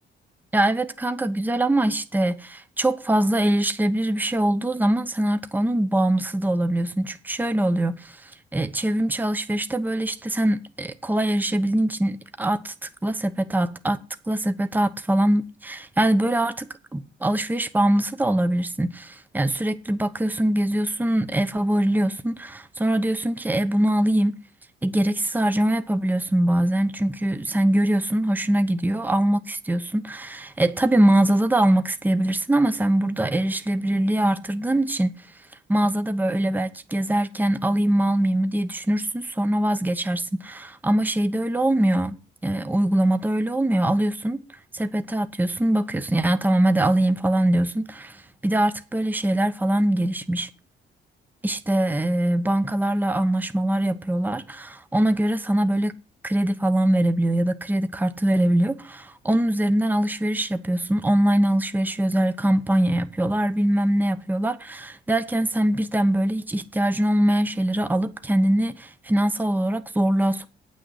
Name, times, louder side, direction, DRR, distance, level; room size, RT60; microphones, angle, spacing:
voice 1, 0.5-14.0 14.3-24.4 24.8-35.1 35.7-42.2 42.4-44.4 44.7-50.5 51.4-55.9 56.2-70.5, right 1 dB, 10° right, 0.9 m, -23 dB
9.0 x 6.4 x 8.1 m
cardioid pair, 90°, 20 cm